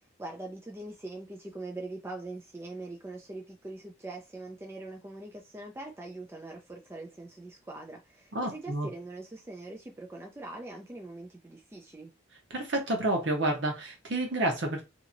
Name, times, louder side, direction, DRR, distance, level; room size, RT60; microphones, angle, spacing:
voice 1, 0.2-12.1, right 2 dB, 10° right, 0.3 m, -42 dB
voice 2, 8.3-8.9 12.5-14.8, right 1 dB, 60° right, 0.9 m, -29 dB
2.8 x 2.6 x 2.5 m
head